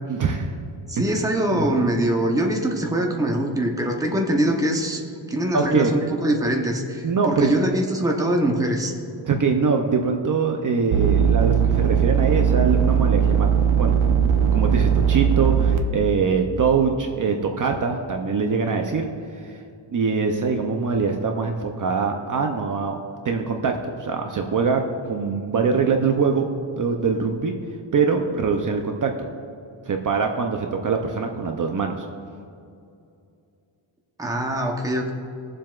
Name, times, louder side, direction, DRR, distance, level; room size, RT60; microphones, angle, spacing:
voice 1, 0.1-0.5 0.9-1.1 1.5-1.7 5.5-5.9 7.0-7.5 9.3-13.5 13.8-14.0 14.5-19.1 19.3-19.6 19.9-23.0 23.2-26.5 26.8-27.5 27.9-29.1 29.9-32.1, right 5 dB, 40° right, 3 dB, 0.6 m, -23 dB
voice 2, 0.9-5.0 5.3-8.9 34.2-35.1, right 1 dB, 5° right, 1 dB, 0.8 m, -23 dB
sound 1, 10.9-15.8, right 8 dB, 75° right, 0.9 m, -19 dB
21.5 x 7.5 x 2.4 m, 2.5 s
wide cardioid pair, 170°, 48 cm